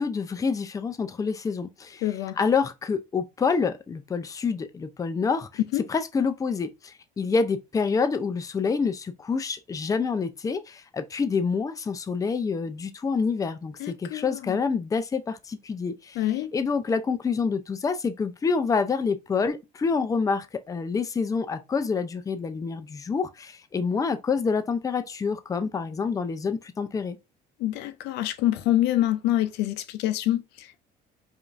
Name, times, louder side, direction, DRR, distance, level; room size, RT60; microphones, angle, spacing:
voice 1, 0.0-2.1 2.4-5.5 5.9-16.3 16.5-27.2, left 5 dB, 20° left, 0.4 m, -27 dB
voice 2, 2.0-2.4 5.7-5.8 13.8-14.5 16.2-16.5 27.6-30.8, left 14 dB, 85° left, 0.5 m, -26 dB
4.9 x 2.5 x 2.5 m
cardioid pair, 110°, 17 cm